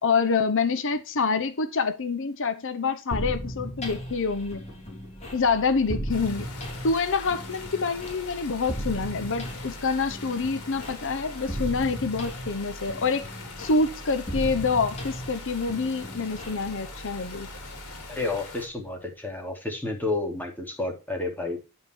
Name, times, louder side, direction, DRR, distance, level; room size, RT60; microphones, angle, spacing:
voice 1, 0.0-4.6 5.3-6.5 6.8-13.3 13.6-17.5, left 4 dB, 60° left, 0.9 m, -26 dB
sound 1, 3.1-18.7, equal, 30° left, 3.2 m, -37 dB
sound 2, 6.1-18.7, left 4 dB, 75° left, 3.1 m, -43 dB
voice 2, 18.1-21.6, left 2 dB, 10° left, 2.9 m, -30 dB
9.4 x 5.4 x 4.6 m
head